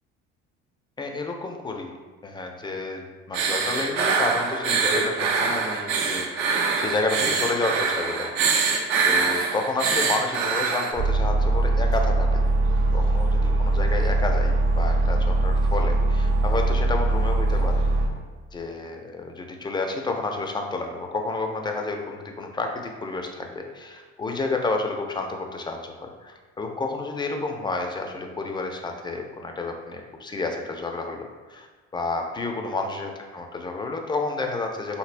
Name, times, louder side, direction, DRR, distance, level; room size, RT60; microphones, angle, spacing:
voice 1, 1.0-1.9 2.2-8.4 9.0-12.4 12.9-17.8 18.5-31.7 31.9-35.0, left 3 dB, 15° left, 3 dB, 0.3 m, -30 dB
sound 1, 3.3-10.9, right 5 dB, 80° right, 0.5 m, -24 dB
sound 2, 11.0-18.1, right 2 dB, 50° right, 0.8 m, -21 dB
3.2 x 2.7 x 2.5 m, 1.4 s
supercardioid pair, 95°, 29 cm